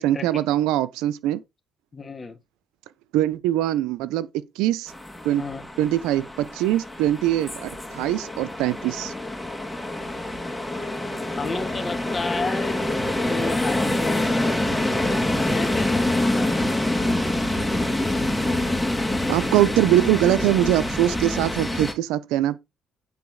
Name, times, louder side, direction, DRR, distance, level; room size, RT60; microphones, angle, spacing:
voice 1, 0.0-1.4 3.1-4.9 5.2-5.4 5.8-9.1 19.3-22.6, right 13 dB, 85° right, 0.8 m, -22 dB
voice 2, 1.9-2.4 5.4-5.6 11.4-12.8 13.3-14.3 15.5-16.8, left 4 dB, 35° left, 2.2 m, -32 dB
sound 1, 4.9-21.9, left 1 dB, 10° left, 2.7 m, -26 dB
9.5 x 4.2 x 6.5 m
supercardioid pair, 70°, 0 cm